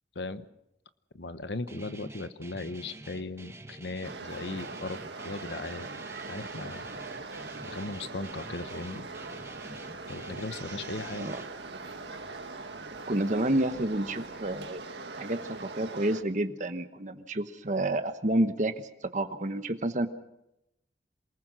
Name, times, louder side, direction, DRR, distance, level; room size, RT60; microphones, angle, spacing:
voice 1, 0.1-0.5 1.1-5.0 5.2-5.9 6.3-6.9 7.6-9.1 10.1-11.4, left 3 dB, 80° left, 12 dB, 1.1 m, -37 dB
Guitar, 1.7-11.5, right 2 dB, 15° right, 1.3 m, -48 dB
sound 1, 4.0-16.2, right 3 dB, 80° right, 2.0 m, -41 dB
sound 2, 5.9-14.7, left 1 dB, 60° left, 7.0 m, -58 dB
voice 2, 13.1-14.8 15.2-18.9 19.1-20.1, right 1 dB, 45° right, 8 dB, 1.2 m, -29 dB
27.5 x 19.5 x 6.2 m, 0.85 s
head